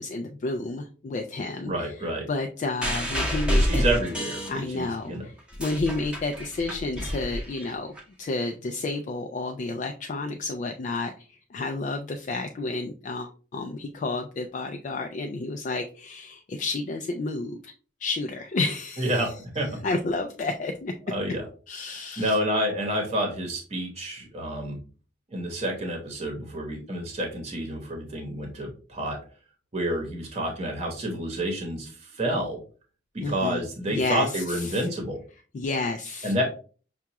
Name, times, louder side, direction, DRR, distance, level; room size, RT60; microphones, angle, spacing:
voice 1, 0.0-3.8 4.5-7.9 8.2-17.7 18.0-19.3 19.8-20.9 21.7-22.4 33.2-33.6 33.9-34.9 35.5-36.3, left 3 dB, 40° left, 4 dB, 0.3 m, -31 dB
voice 2, 1.7-2.3 3.5-5.3 19.0-19.8 21.1-21.4 22.2-24.8 25.3-29.2 29.7-32.6 33.2-35.2 36.2-36.4, right 1 dB, 30° right, 1 dB, 0.9 m, -29 dB
sound 1, 2.8-5.0 5.4-8.0 8.9-9.0, equal, 5° right, 0.8 m, -28 dB
5.7 x 2.3 x 2.8 m, 0.38 s
head